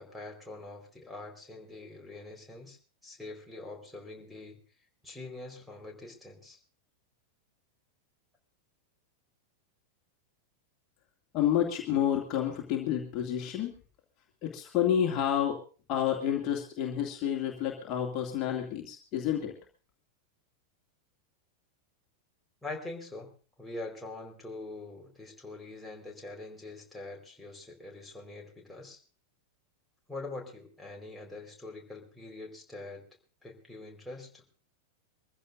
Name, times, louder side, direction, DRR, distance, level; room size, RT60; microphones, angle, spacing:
voice 1, 0.0-2.8 3.0-4.6 5.0-6.6 22.6-23.3 23.6-29.0 30.1-33.0 33.4-34.4, left 2 dB, 5° left, -1 dB, 4.4 m, -44 dB
voice 2, 11.3-13.7 14.4-15.6 15.9-19.5, left 10 dB, 35° left, 0 dB, 2.4 m, -29 dB
24.5 x 15.0 x 2.6 m, 0.38 s
figure-of-eight pair, 90°, 0 cm